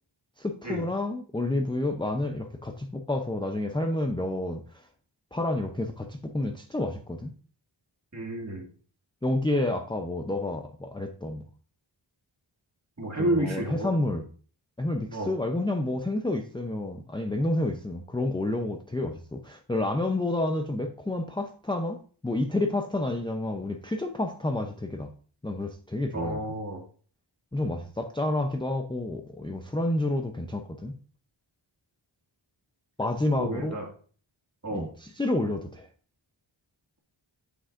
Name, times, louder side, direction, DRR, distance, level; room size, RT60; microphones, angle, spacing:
voice 1, 0.4-4.8 5.3-7.3 9.2-11.4 13.2-14.2 14.8-22.0 22.2-25.1 25.4-26.4 27.5-30.9 33.0-33.8 34.7-35.9, left 1 dB, 10° left, 3 dB, 0.6 m, -29 dB
voice 2, 8.1-8.7 13.0-13.9 15.1-15.3 26.1-26.8 33.4-33.9 34.6-34.9, right 1 dB, 30° right, 0 dB, 2.3 m, -30 dB
7.8 x 6.5 x 2.6 m, 0.43 s
wide cardioid pair, 70°, 50 cm